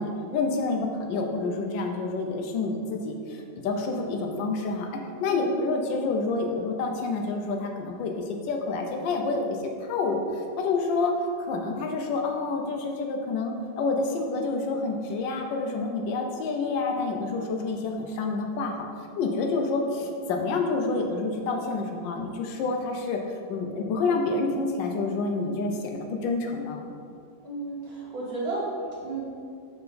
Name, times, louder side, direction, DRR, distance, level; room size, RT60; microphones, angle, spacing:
voice 1, 0.0-4.9 5.2-23.2 23.5-26.8, left 3 dB, 85° left, 3 dB, 1.4 m, -28 dB
voice 2, 27.4-29.2, right 2 dB, 55° right, -6 dB, 2.0 m, -33 dB
5.7 x 4.4 x 4.1 m, 2.3 s
omnidirectional pair, 1.9 m